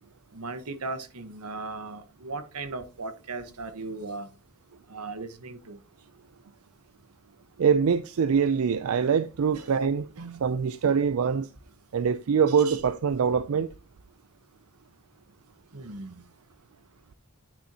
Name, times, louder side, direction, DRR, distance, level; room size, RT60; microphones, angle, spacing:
voice 1, 0.3-4.3 4.9-5.8 9.5-9.7 10.2-10.5 12.5-12.8 15.7-16.2, right 3 dB, 90° right, 1.2 m, -37 dB
voice 2, 7.6-10.1 10.4-11.5 11.9-13.7, right 6 dB, 70° right, 0.4 m, -24 dB
9.8 x 6.3 x 2.8 m
head